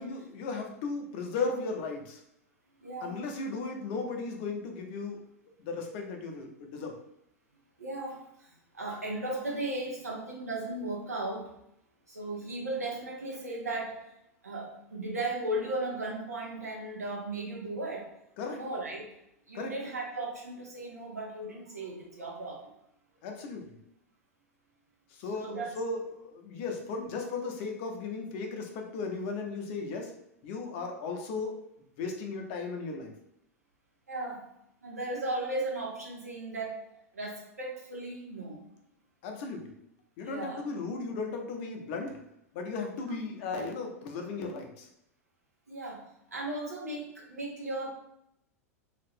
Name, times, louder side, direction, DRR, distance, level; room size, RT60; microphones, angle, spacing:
voice 1, 0.0-2.2 3.0-5.2 5.6-6.9 18.4-18.6 19.5-19.8 23.2-23.8 25.1-30.1 30.4-31.6 32.0-33.1 39.2-39.7 40.2-42.2 42.5-44.9, left 4 dB, 50° left, 3 dB, 0.6 m, -36 dB
voice 2, 2.8-3.2 7.8-11.5 12.1-14.1 14.4-18.1 18.5-19.1 19.5-22.7 25.3-25.7 34.1-34.5 34.8-38.6 40.2-40.6 43.0-43.2 45.7-46.0 46.3-47.9, right 2 dB, 80° right, -2 dB, 0.9 m, -36 dB
2.8 x 2.4 x 3.4 m, 0.80 s
figure-of-eight pair, 90°, 8 cm